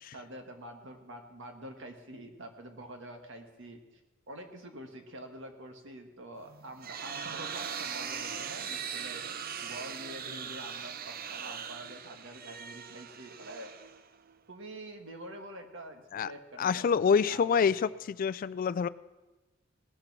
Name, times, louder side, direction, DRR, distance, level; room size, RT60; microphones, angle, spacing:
voice 1, 0.1-3.8 4.3-9.2 9.6-13.7 14.5-17.9, right 1 dB, 65° right, 5 dB, 1.6 m, -46 dB
sound 1, 6.5-14.3, right 7 dB, 45° right, 0.6 m, -40 dB
voice 2, 16.6-18.9, left 6 dB, 45° left, 17 dB, 0.3 m, -27 dB
19.0 x 6.7 x 6.0 m, 1.1 s
head